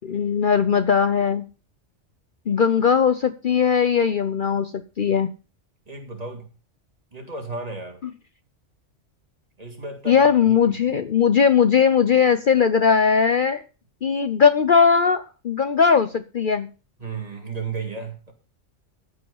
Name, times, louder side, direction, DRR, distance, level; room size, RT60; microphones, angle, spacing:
voice 1, 0.0-1.5 2.5-5.3 10.1-13.6 14.0-16.7, left 6 dB, 50° left, 11 dB, 0.8 m, -19 dB
voice 2, 5.9-6.5 7.1-8.0 9.6-11.1 17.0-18.3, right 3 dB, 30° right, 2 dB, 3.0 m, -34 dB
14.5 x 5.5 x 7.2 m, 0.34 s
omnidirectional pair, 1.2 m